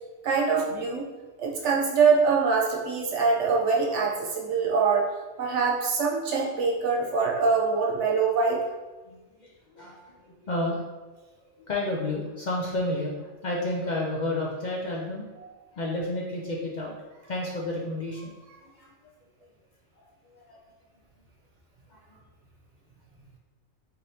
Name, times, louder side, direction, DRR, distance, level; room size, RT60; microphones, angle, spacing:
voice 1, 0.2-1.0 1.4-5.1 5.4-8.6 15.4-15.5, right 5 dB, 75° right, -2 dB, 1.1 m, -24 dB
voice 2, 9.1-10.8 11.4-15.3 15.8-18.3 18.6-18.9 20.0-20.1 20.3-20.6 21.9-22.2, left 1 dB, 55° left, -3 dB, 0.5 m, -31 dB
4.2 x 3.3 x 2.7 m, 1.2 s
omnidirectional pair, 1.2 m